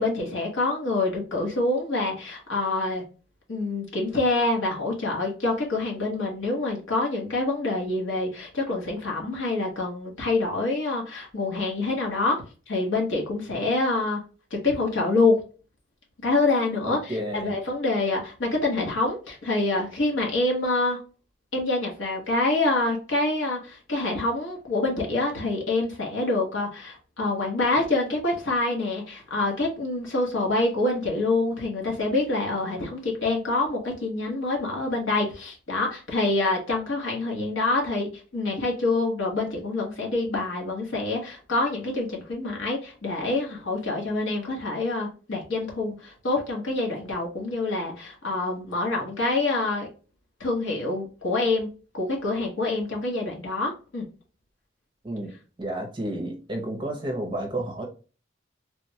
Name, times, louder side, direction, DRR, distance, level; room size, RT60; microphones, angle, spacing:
voice 1, 0.0-3.0 3.5-12.4 12.7-14.2 14.5-15.4 16.2-21.0 21.5-49.9 50.4-51.7 51.9-54.1, left 2 dB, 85° left, -1 dB, 1.1 m, -26 dB
voice 2, 16.8-17.6 55.0-55.3 55.6-57.9, right 1 dB, 25° right, 2 dB, 0.6 m, -31 dB
3.3 x 2.1 x 2.7 m, 0.36 s
head